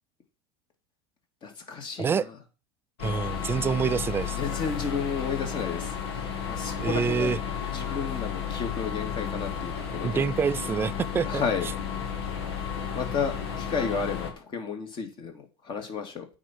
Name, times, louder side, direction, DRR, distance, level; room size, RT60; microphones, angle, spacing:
voice 1, 1.4-2.4 4.3-7.4 7.7-10.3 11.3-11.7 13.0-16.3, left 6 dB, 35° left, 2.4 m, -32 dB
sound 1, 3.0-14.3, left 7 dB, 80° left, 2.4 m, -33 dB
voice 2, 3.0-4.4 6.8-7.4 10.0-11.4, right 6 dB, 15° right, 0.4 m, -26 dB
9.1 x 4.4 x 6.1 m
supercardioid pair, 115°, 13 cm